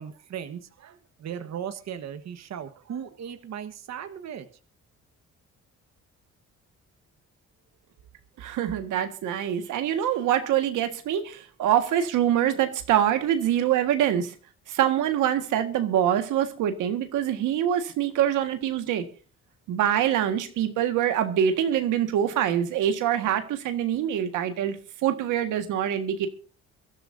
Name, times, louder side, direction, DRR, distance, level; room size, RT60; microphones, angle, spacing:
voice 1, 0.0-4.5, right 8 dB, 60° right, 1.3 m, -37 dB
voice 2, 8.4-14.3 14.7-19.0 19.7-24.8 25.0-26.3, right 10 dB, 90° right, 1.7 m, -25 dB
24.0 x 12.5 x 2.7 m
cardioid pair, 90°, 30 cm